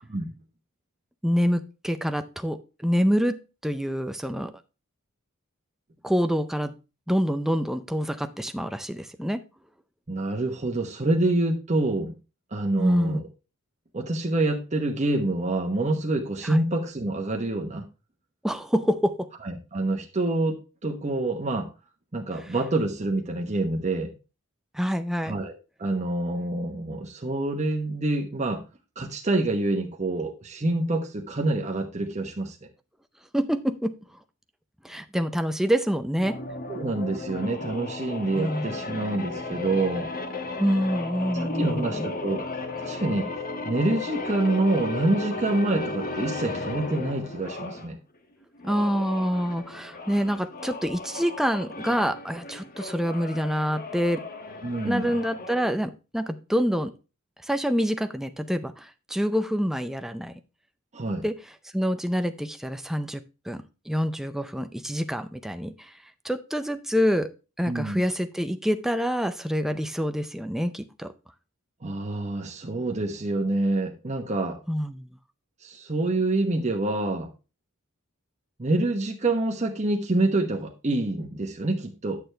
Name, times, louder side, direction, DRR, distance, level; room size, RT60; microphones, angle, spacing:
voice 1, 1.2-4.5 6.0-6.7 7.1-9.4 12.8-13.2 16.4-16.6 18.4-19.3 22.5-22.6 24.7-25.4 33.3-34.0 34.8-36.4 38.3-38.7 40.6-42.1 48.6-54.2 54.8-56.9 57.4-60.4 61.2-61.4 61.7-65.9 66.2-67.3 67.6-71.1 74.7-75.2, equal, ahead, 0.5 m, -26 dB
voice 2, 10.1-12.1 12.5-13.2 13.9-17.8 19.4-21.7 22.1-24.1 25.2-25.5 25.8-28.6 29.0-32.6 36.7-40.1 41.3-42.4 42.8-43.3 43.7-48.0 54.6-55.1 60.9-61.2 67.7-68.1 71.8-74.6 75.6-77.3 78.6-82.2, right 2 dB, 35° right, 1.0 m, -27 dB
sound 1, 36.2-47.9 48.6-55.7, left 2 dB, 40° left, 1.2 m, -35 dB
9.5 x 6.6 x 3.3 m
head